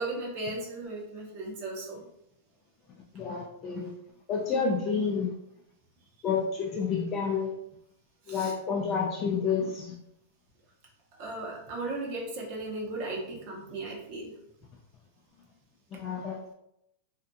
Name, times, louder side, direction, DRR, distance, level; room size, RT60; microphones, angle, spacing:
voice 1, 0.0-2.0 8.3-8.5 11.2-14.3, right 2 dB, 50° right, -2 dB, 0.8 m, -36 dB
voice 2, 3.1-3.9 4.3-5.4 6.2-7.5 8.3-9.9 15.9-16.4, left 5 dB, 30° left, -2 dB, 0.4 m, -29 dB
2.6 x 2.4 x 2.3 m, 0.81 s
hypercardioid pair, 135°, 0 cm